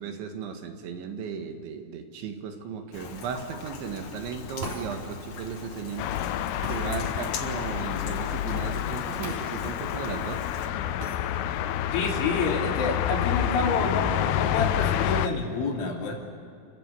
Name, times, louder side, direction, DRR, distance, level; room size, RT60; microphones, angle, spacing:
voice 1, 0.0-6.3 6.6-10.4, right 6 dB, 75° right, 5 dB, 3.9 m, -36 dB
Rain, 2.9-10.7, left 5 dB, 60° left, 2.2 m, -41 dB
sound 1, 4.6-4.9 6.6-6.8 9.2-9.4 9.8-9.9 11.0-11.2, right 1 dB, 40° right, 4.7 m, -37 dB
sound 2, 6.0-15.3, left 11 dB, 90° left, 2.3 m, -28 dB
voice 2, 11.9-16.2, left 4 dB, 75° left, 0 dB, 5.4 m, -28 dB
29.5 x 15.5 x 8.3 m, 2.5 s
omnidirectional pair, 5.5 m